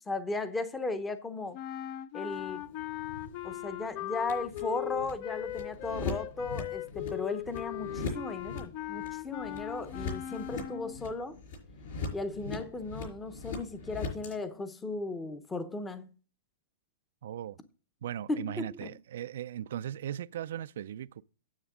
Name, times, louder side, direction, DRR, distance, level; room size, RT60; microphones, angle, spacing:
voice 1, 0.1-1.6 2.1-2.6 3.4-11.4 12.1-16.1 18.3-18.9, left 3 dB, 10° left, 0.8 m, -36 dB
sound 1, 1.5-11.1, left 13 dB, 40° left, 0.5 m, -39 dB
sound 2, 2.3-14.3, left 3 dB, 70° left, 5.1 m, -41 dB
voice 2, 17.2-17.6 18.0-21.2, right 10 dB, 70° right, 0.4 m, -38 dB
9.6 x 7.9 x 3.6 m
hypercardioid pair, 150°, 0 cm